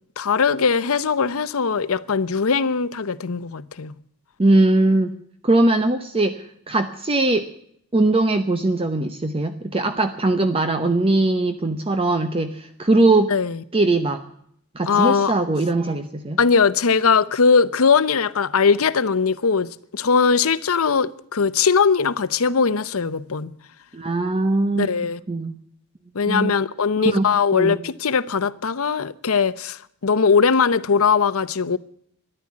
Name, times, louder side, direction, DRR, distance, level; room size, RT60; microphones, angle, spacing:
voice 1, 0.2-3.9 13.3-13.6 14.9-15.3 16.4-23.5 24.7-25.2 26.1-31.8, left 5 dB, 70° left, 0.7 m, -20 dB
voice 2, 4.4-5.1 5.4-7.5 7.9-13.3 13.7-14.2 14.7-16.4 23.9-24.9 25.3-25.5 26.3-26.5 27.0-27.3 27.5-27.8, right 2 dB, 25° right, 0.8 m, -20 dB
13.5 x 11.0 x 8.4 m
head